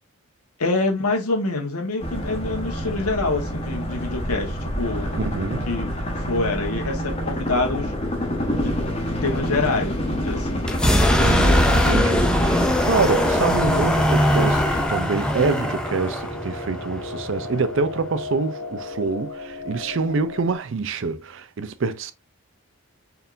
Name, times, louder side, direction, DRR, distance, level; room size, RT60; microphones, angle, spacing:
voice 1, 0.6-7.9 8.5-8.8 9.0-10.7, left 3 dB, 85° left, 1.3 m, -26 dB
sound 1, 2.0-14.9, equal, 25° left, 1.0 m, -27 dB
voice 2, 5.2-5.7 11.2-14.6 14.9-22.1, right 4 dB, 55° right, 0.5 m, -26 dB
sound 2, 10.6-18.4, equal, 5° left, 0.5 m, -21 dB
sound 3, 15.5-20.6, left 2 dB, 65° left, 1.5 m, -35 dB
4.5 x 3.6 x 2.5 m
head